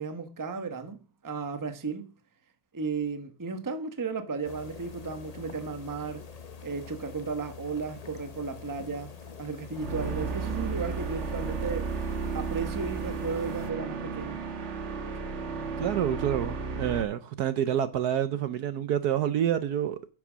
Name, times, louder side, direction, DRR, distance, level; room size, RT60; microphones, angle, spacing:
voice 1, 0.0-2.1 2.7-6.2 6.6-9.1 9.4-11.9 12.3-14.4, right 4 dB, 15° right, 0.8 m, -34 dB
sound 1, 4.4-13.7, left 6 dB, 40° left, 0.5 m, -45 dB
sound 2, 9.7-17.0, right 5 dB, 40° right, 1.4 m, -33 dB
voice 2, 15.8-20.0, right 10 dB, 65° right, 1.1 m, -28 dB
10.5 x 7.4 x 6.2 m
omnidirectional pair, 2.0 m